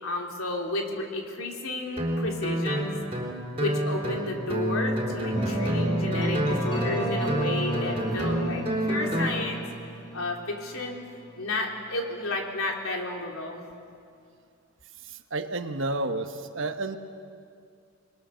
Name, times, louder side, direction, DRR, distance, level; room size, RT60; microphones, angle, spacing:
voice 1, 0.0-2.9 3.5-9.6 10.1-11.0 11.3-13.6, left 2 dB, 85° left, 1 dB, 3.3 m, -32 dB
Guitar, 2.0-9.3, equal, 25° right, 3.6 m, -29 dB
sound 1, 5.3-11.2, right 1 dB, 20° left, 5.3 m, -32 dB
voice 2, 15.0-17.0, right 2 dB, 60° right, 8 dB, 1.2 m, -31 dB
28.5 x 21.0 x 6.4 m, 2.3 s
head